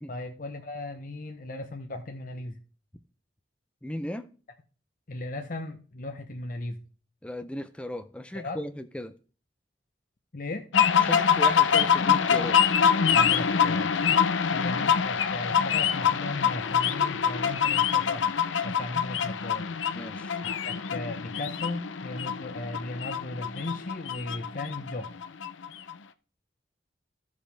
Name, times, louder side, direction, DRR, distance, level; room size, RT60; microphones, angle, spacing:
voice 1, 0.1-2.6 5.1-6.8 8.3-8.6 10.3-10.6 13.1-13.9 14.5-18.3 18.6-19.7 20.4-25.1, left 2 dB, 45° left, 0.8 m, -36 dB
voice 2, 3.8-4.3 7.2-9.1 11.0-12.6 19.9-20.4, left 1 dB, 5° left, 0.5 m, -36 dB
sound 1, 10.7-25.9, left 7 dB, 85° left, 0.6 m, -25 dB
15.0 x 5.2 x 3.3 m
head